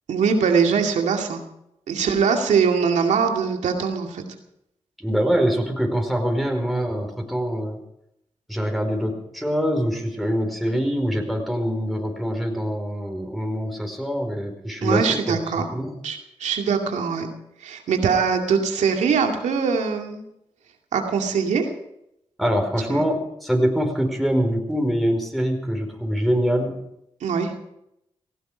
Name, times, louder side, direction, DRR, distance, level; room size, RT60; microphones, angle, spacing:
voice 1, 0.1-1.4 1.9-4.2 14.8-15.7 16.0-17.3 17.6-20.2 20.9-21.7 22.9-23.0 27.2-27.5, right 6 dB, 85° right, 3 dB, 2.3 m, -22 dB
voice 2, 5.0-7.8 8.5-16.0 22.4-26.7, equal, ahead, 2 dB, 4.7 m, -24 dB
18.0 x 15.5 x 5.2 m, 0.80 s
supercardioid pair, 45°, 12 cm